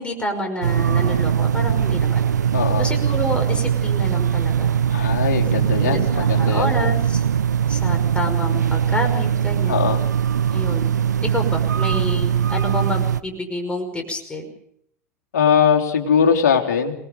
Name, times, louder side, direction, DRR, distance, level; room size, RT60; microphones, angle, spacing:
voice 1, 0.0-2.2 2.8-4.8 5.8-7.2 7.7-9.9 10.5-10.9 11.2-14.5, left 1 dB, 10° left, 4 dB, 5.5 m, -28 dB
sound 1, 0.6-13.2, right 8 dB, 80° right, 0.9 m, -20 dB
voice 2, 2.5-2.9 4.9-6.7 9.7-10.0 15.3-16.9, left 7 dB, 65° left, 3 dB, 3.3 m, -20 dB
27.0 x 19.5 x 5.3 m, 0.70 s
figure-of-eight pair, 85°, 9 cm